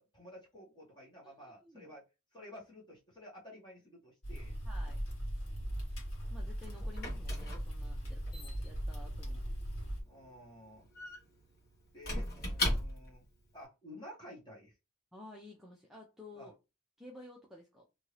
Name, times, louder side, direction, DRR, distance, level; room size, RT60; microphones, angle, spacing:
voice 1, 0.0-2.0 2.3-4.6 5.4-5.8 6.7-6.9 8.1-8.3 9.2-9.4 10.1-10.9 11.9-13.2 13.5-14.7 16.3-16.5, equal, 20° left, 1.4 m, -53 dB
voice 2, 1.2-1.9 4.6-5.0 6.3-9.4 15.1-16.5 17.0-17.8, left 2 dB, ahead, 0.5 m, -53 dB
sound 1, 4.2-10.0, equal, 75° left, 1.4 m, -39 dB
Squeak / Wood, 6.1-13.3, left 1 dB, 45° left, 1.3 m, -39 dB
2.7 x 2.6 x 3.2 m
head